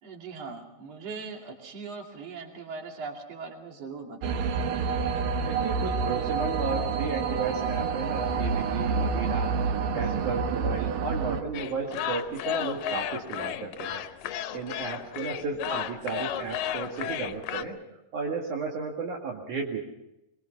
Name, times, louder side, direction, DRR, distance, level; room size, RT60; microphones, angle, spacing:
voice 1, 0.0-4.4 15.7-15.8, right 4 dB, 50° right, 2 dB, 3.6 m, -40 dB
sound 1, 4.2-11.4, right 5 dB, 85° right, 2.8 m, -28 dB
voice 2, 5.5-9.5 9.9-14.0 14.5-17.8 18.1-19.8, right 5 dB, 65° right, 0 dB, 3.4 m, -33 dB
sound 2, 11.5-17.6, left 11 dB, 85° left, 2.6 m, -33 dB
24.0 x 22.5 x 5.7 m, 0.91 s
omnidirectional pair, 3.8 m